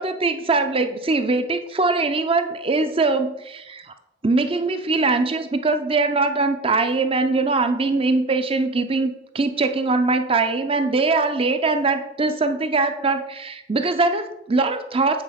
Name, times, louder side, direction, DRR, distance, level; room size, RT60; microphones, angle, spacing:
voice 1, 0.0-3.9 4.2-15.2, right 3 dB, 30° right, 9 dB, 0.7 m, -22 dB
8.8 x 4.3 x 5.7 m, 0.88 s
head